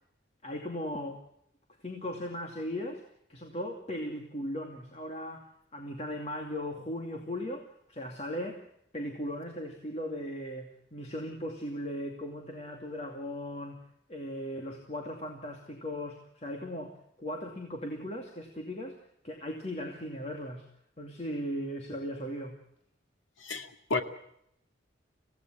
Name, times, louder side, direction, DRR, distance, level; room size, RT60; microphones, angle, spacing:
voice 1, 0.4-1.2 1.8-3.0 3.3-8.7 8.9-13.8 14.1-20.7 21.0-22.6, equal, 35° left, 2 dB, 2.5 m, -38 dB
voice 2, 23.4-24.0, left 3 dB, 85° left, 6 dB, 2.3 m, -32 dB
26.0 x 17.0 x 7.5 m, 0.73 s
head